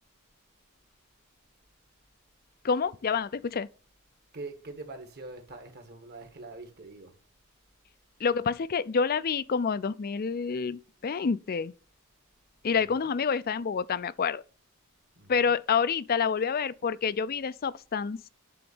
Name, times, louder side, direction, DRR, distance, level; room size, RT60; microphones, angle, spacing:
voice 1, 2.6-3.7 8.2-11.7 12.6-14.4 15.3-18.2, left 6 dB, 45° left, 0.4 m, -28 dB
voice 2, 4.3-7.2 12.7-13.1 15.2-15.5, right 3 dB, 50° right, 1.6 m, -44 dB
9.3 x 3.9 x 7.0 m
head